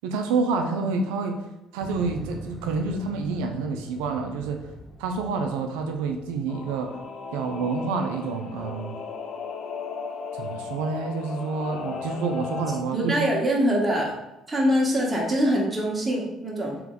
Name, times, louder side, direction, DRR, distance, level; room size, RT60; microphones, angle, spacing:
voice 1, 0.0-1.4 1.7-4.7 5.0-7.0 7.3-9.0 10.3-13.2, right 4 dB, 85° right, 5 dB, 0.5 m, -28 dB
Motorcycle, 1.8-7.0, right 1 dB, 25° left, 1.4 m, -42 dB
Singing / Musical instrument, 6.5-12.8, left 4 dB, 60° left, 0.4 m, -36 dB
voice 2, 12.9-14.1 14.5-16.8, equal, 20° right, -3 dB, 1.1 m, -23 dB
3.4 x 3.1 x 3.7 m, 0.95 s
supercardioid pair, 65°, 0 cm